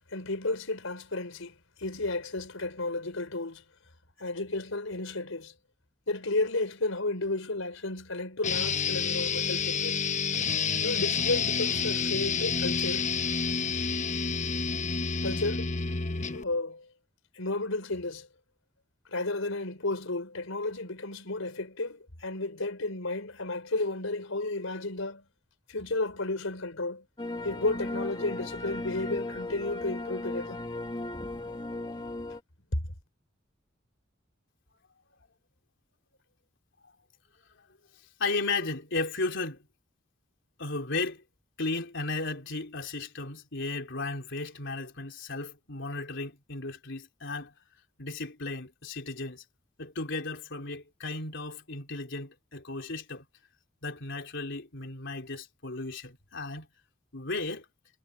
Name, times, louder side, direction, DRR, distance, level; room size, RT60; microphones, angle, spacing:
voice 1, 0.1-3.6 4.2-5.5 6.1-10.0 10.8-13.1 15.2-15.7 16.3-16.9 17.3-18.3 19.1-25.2 25.7-27.0 27.4-30.6, left 2 dB, 90° left, 4.5 m, -32 dB
sound 1, 8.4-16.4, left 5 dB, 35° left, 1.1 m, -29 dB
sound 2, 27.2-32.4, left 2 dB, 20° left, 1.5 m, -36 dB
voice 2, 38.2-39.7 40.6-41.2 41.6-47.5 48.0-49.4 49.8-53.2 53.8-56.7 57.1-57.7, left 3 dB, 65° left, 3.9 m, -35 dB
head